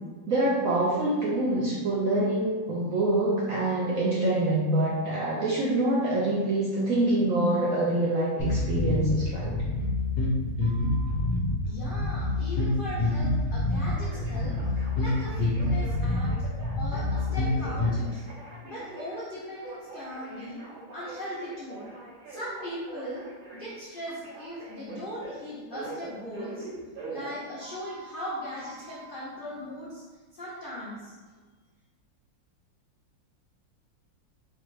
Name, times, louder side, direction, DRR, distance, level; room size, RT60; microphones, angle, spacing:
voice 1, 0.3-9.6, right 1 dB, 70° right, -6 dB, 0.8 m, -25 dB
sound 1, 8.4-18.0, left 2 dB, 60° left, 1.4 m, -27 dB
Telephone, 10.6-11.1 13.9-28.1 28.6-29.1, right 3 dB, 90° right, 1.9 m, -44 dB
voice 2, 11.6-14.6 15.0-16.3 16.7-18.2 18.6-20.6 20.9-21.8 22.3-23.3 23.5-26.7 27.1-30.0 30.3-31.1, equal, 85° left, -8 dB, 0.4 m, -38 dB
4.6 x 2.5 x 3.1 m, 1.4 s
omnidirectional pair, 2.1 m